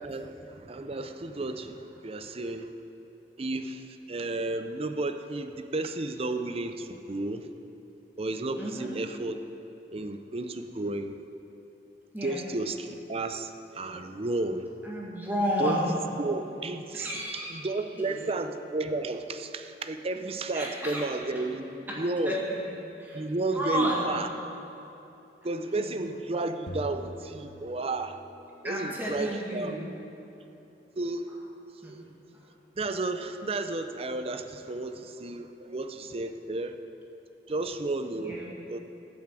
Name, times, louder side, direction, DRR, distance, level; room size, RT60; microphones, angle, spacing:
voice 1, 0.0-2.7 3.4-7.5 8.2-9.4 9.9-11.2 12.2-14.7 15.6-15.8 16.2-22.4 23.1-24.3 25.4-28.2 28.6-29.8 31.0-31.3 31.8-32.0 32.8-36.8 37.5-38.4 38.7-38.8, right 2 dB, 35° right, 8 dB, 0.6 m, -32 dB
voice 2, 8.5-8.9 12.1-12.4 14.8-16.0 16.9-17.7 18.0-18.3 20.5-21.1 22.3-23.2 23.5-24.1 25.8-25.9 28.6-29.9 31.8-32.0 32.3-32.5 38.1-38.5, equal, 10° right, -5 dB, 2.2 m, -32 dB
sound 1, 26.7-28.5, equal, 65° left, 1.1 m, -42 dB
13.5 x 7.2 x 7.6 m, 2.9 s
head